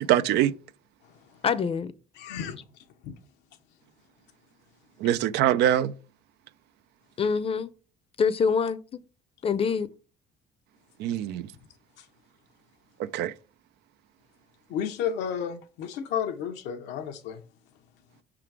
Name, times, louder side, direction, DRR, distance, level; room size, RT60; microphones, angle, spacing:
voice 1, 0.1-0.5 5.0-5.9 11.0-11.5 13.0-13.3, right 11 dB, 80° right, 0.5 m, -23 dB
voice 2, 1.4-1.9 7.2-7.7 8.2-9.0 9.4-9.9, left 6 dB, 35° left, 0.6 m, -25 dB
voice 3, 2.2-2.6 3.0-3.1 14.7-17.4, left 8 dB, 90° left, 0.8 m, -32 dB
5.7 x 3.8 x 4.7 m
cardioid pair, 110°, 17 cm